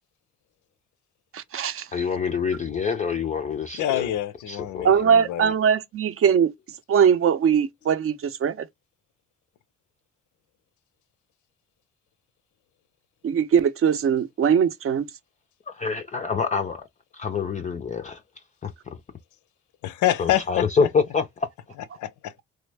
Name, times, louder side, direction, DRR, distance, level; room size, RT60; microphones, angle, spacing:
voice 1, 1.3-1.9 4.8-6.5 6.9-8.7 13.2-15.1, right 7 dB, 45° right, 0.6 m, -21 dB
voice 2, 1.9-4.1 4.5-5.0 15.7-16.9 17.1-19.0 20.2-21.5, left 5 dB, 25° left, 0.4 m, -27 dB
voice 3, 3.8-5.5 19.8-20.6 22.0-22.3, left 12 dB, 75° left, 0.5 m, -26 dB
3.2 x 2.1 x 3.3 m
cardioid pair, 90°, 30 cm